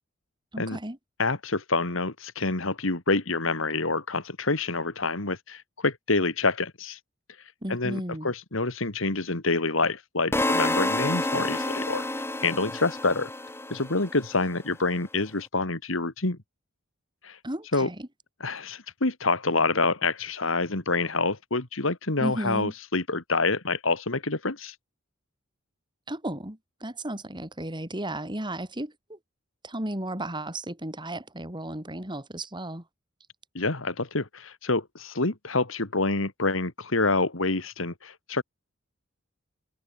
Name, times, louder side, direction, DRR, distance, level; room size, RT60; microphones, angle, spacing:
voice 1, 0.5-1.0 7.6-8.3 17.4-18.1 22.2-22.7 26.1-29.2 29.6-32.8, right 1 dB, 25° right, 5.5 m, -34 dB
voice 2, 1.2-7.0 7.7-12.1 12.4-13.3 13.7-16.4 17.2-17.4 17.7-17.9 18.4-24.7 33.5-38.4, left 3 dB, 70° left, 2.5 m, -27 dB
sound 1, 10.3-14.4, left 1 dB, 10° left, 2.5 m, -29 dB
head